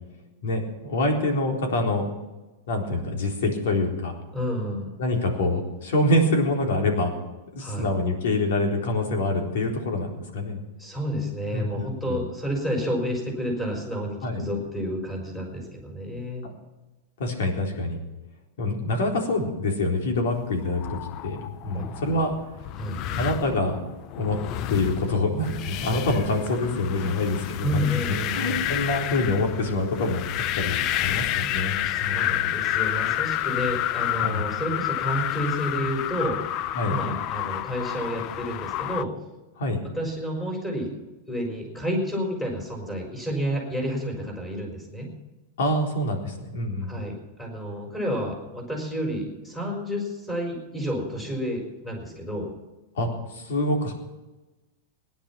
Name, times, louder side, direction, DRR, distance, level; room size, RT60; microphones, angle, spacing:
voice 1, 0.4-2.1 2.7-4.1 5.0-7.1 7.5-10.6 11.5-11.7 12.1-12.2 14.2-14.4 16.4-16.5 17.2-18.0 18.6-22.3 23.2-23.8 24.2-24.4 24.7-27.8 28.1-30.2 30.5-31.7 32.0-32.5 34.2-34.4 36.8-37.0 39.6-39.8 45.6-46.9 53.0-53.9, left 2 dB, 75° left, 1 dB, 4.0 m, -26 dB
voice 2, 4.3-5.0 7.6-7.9 10.8-16.5 21.7-21.9 22.8-23.2 27.6-28.6 31.8-36.4 36.9-39.1 39.8-40.9 41.3-45.1 46.8-52.5, equal, 10° left, 1 dB, 4.4 m, -30 dB
sound 1, 20.5-39.0, left 13 dB, 35° left, 0.4 m, -30 dB
18.0 x 10.5 x 5.8 m, 1.1 s
supercardioid pair, 165°, 0 cm